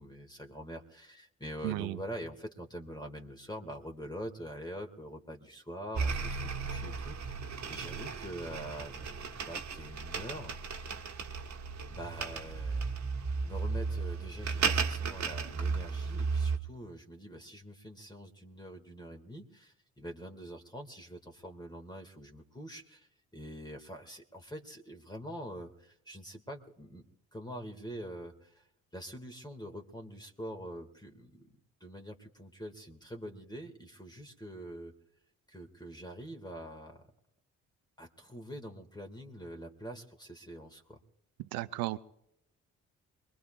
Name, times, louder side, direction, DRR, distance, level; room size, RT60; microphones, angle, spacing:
voice 1, 0.0-7.3 7.7-10.6 11.9-12.8 13.4-27.0 27.3-28.7 28.9-31.4 31.8-34.9 35.5-37.1 38.0-41.0, equal, 10° left, 3 dB, 2.2 m, -45 dB
voice 2, 1.6-2.0 41.5-42.0, right 18 dB, 85° right, 12 dB, 0.6 m, -34 dB
sound 1, 5.9-16.6, right 5 dB, 55° right, 1.6 m, -35 dB
23.5 x 21.5 x 2.5 m, 0.80 s
supercardioid pair, 55°, 34 cm